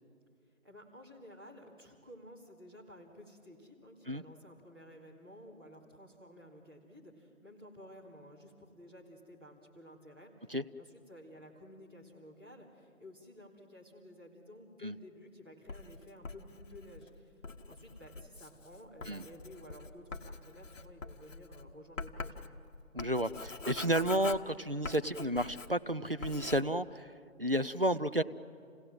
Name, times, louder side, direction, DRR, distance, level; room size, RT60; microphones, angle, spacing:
voice 1, 0.6-10.3 10.8-17.4 17.7-22.4, equal, 15° right, -7 dB, 2.3 m, -53 dB
Writing, 15.7-25.9 26.2-26.6, left 3 dB, 65° left, 1.3 m, -45 dB
voice 2, 22.9-28.2, right 1 dB, 45° right, 10 dB, 0.4 m, -32 dB
29.0 x 17.0 x 7.6 m, 2.5 s
figure-of-eight pair, 175°, 42 cm